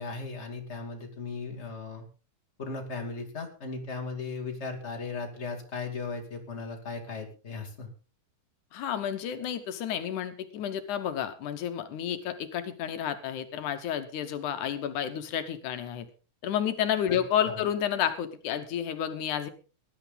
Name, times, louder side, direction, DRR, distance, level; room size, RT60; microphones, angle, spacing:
voice 1, 0.0-2.0 2.6-7.9 17.1-17.2 17.4-17.6, left 4 dB, 20° left, 3 dB, 2.8 m, -37 dB
voice 2, 8.7-16.1 16.4-19.5, left 9 dB, 80° left, 9 dB, 2.5 m, -31 dB
19.0 x 11.0 x 3.9 m, 0.35 s
omnidirectional pair, 3.5 m